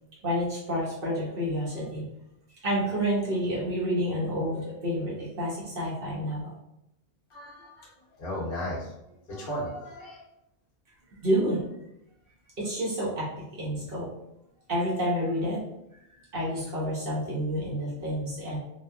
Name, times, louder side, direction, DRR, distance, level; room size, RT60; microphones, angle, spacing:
voice 1, 0.2-2.0 2.6-6.5 11.2-11.6 12.6-14.1 14.7-15.6 16.3-18.6, equal, 50° right, -6 dB, 0.9 m, -29 dB
voice 2, 7.3-7.9 8.2-10.2, equal, 55° left, -6 dB, 0.9 m, -36 dB
2.8 x 2.2 x 2.2 m, 0.82 s
omnidirectional pair, 1.3 m